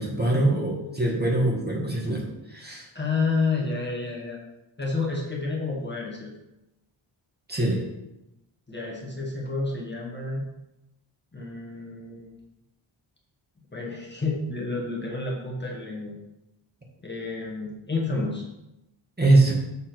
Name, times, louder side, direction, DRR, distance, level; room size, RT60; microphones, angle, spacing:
voice 1, 0.0-2.9 7.5-7.8 19.2-19.5, right 2 dB, 20° right, -2 dB, 1.5 m, -23 dB
voice 2, 2.9-4.4 4.8-6.3 8.7-10.5 11.3-12.3 13.7-16.2 17.0-18.4, left 3 dB, 25° left, -3 dB, 1.2 m, -30 dB
6.8 x 3.6 x 5.9 m, 0.93 s
wide cardioid pair, 145°, 47 cm